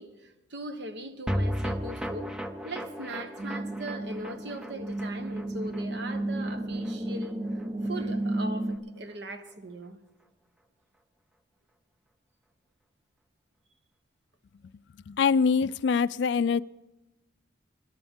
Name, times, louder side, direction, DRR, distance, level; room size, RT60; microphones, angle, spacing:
voice 1, 0.0-10.0, right 1 dB, 60° right, 1.1 m, -40 dB
sound 1, 1.3-7.7 8.0-8.1 8.3-8.4, equal, 5° right, 0.5 m, -35 dB
sound 2, 3.4-8.8, right 1 dB, 25° right, 0.8 m, -33 dB
voice 2, 15.1-16.6, left 5 dB, 60° left, 0.3 m, -24 dB
21.5 x 11.0 x 3.6 m
head